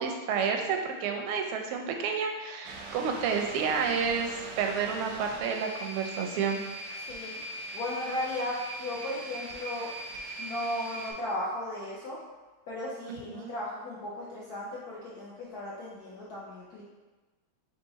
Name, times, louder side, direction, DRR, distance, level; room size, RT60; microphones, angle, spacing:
voice 1, 0.0-6.6 13.1-13.5, right 6 dB, 85° right, 3 dB, 1.5 m, -30 dB
sound 1, 2.6-11.1, right 2 dB, 70° right, 0.9 m, -41 dB
voice 2, 7.1-7.4 7.7-9.9 10.4-12.2 12.7-16.8, left 1 dB, 65° left, -6 dB, 0.9 m, -36 dB
4.7 x 2.5 x 3.8 m, 1.2 s
omnidirectional pair, 2.3 m